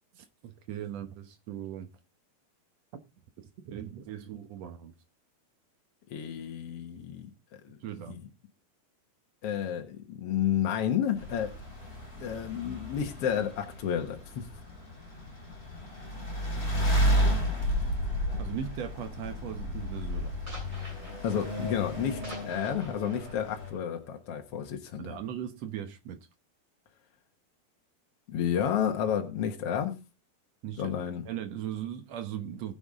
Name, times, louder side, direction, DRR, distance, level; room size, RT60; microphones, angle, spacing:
voice 1, 0.1-1.9 3.6-4.9 7.8-8.2 18.4-20.3 25.0-26.2 30.6-30.9 31.2-32.7, right 10 dB, 80° right, 1.5 m, -38 dB
voice 2, 6.1-7.3 7.7-7.8 8.1-8.2 9.4-11.5 12.2-14.5 21.2-25.2 28.3-29.9 30.8-31.2, left 9 dB, 70° left, 1.4 m, -31 dB
sound 1, 10.4-14.2 14.6-18.0 18.2-18.6 19.0-25.4, equal, 20° right, 8.2 m, -52 dB
sound 2, 11.2-23.7, equal, 20° left, 5.4 m, -32 dB
19.5 x 7.1 x 3.6 m
omnidirectional pair, 4.6 m